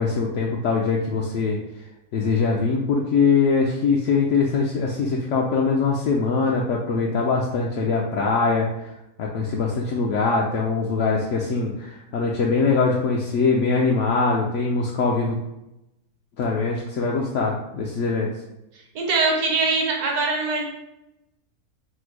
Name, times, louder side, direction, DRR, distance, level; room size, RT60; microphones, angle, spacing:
voice 1, 0.0-1.6 2.1-8.9 9.2-15.4 16.4-18.3, left 4 dB, 65° left, -2 dB, 0.7 m, -22 dB
voice 2, 18.9-20.6, right 3 dB, 70° right, 0 dB, 1.4 m, -22 dB
4.3 x 2.2 x 4.6 m, 0.89 s
omnidirectional pair, 1.7 m